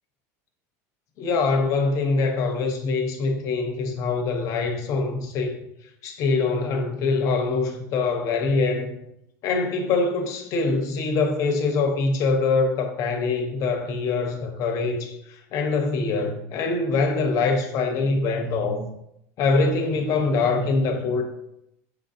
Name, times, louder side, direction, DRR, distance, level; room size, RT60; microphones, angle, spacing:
voice 1, 1.2-5.6 6.0-8.9 9.4-18.9 19.4-21.2, left 3 dB, 45° left, 4 dB, 0.7 m, -24 dB
6.3 x 2.5 x 2.6 m, 0.78 s
supercardioid pair, 145°, 8 cm